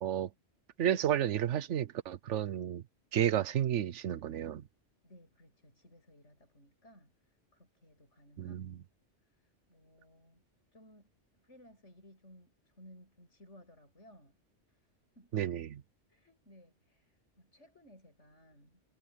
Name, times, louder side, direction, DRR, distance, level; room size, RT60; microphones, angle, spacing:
voice 1, 0.8-2.8 3.1-4.6 8.4-8.8 15.3-15.7, right 10 dB, 80° right, 1.1 m, -31 dB
voice 2, 5.0-8.6 9.3-10.4 10.7-14.4 14.7-14.9 15.2-15.5 16.1-18.8, equal, 75° left, 7.8 m, -60 dB
omnidirectional pair, 1.2 m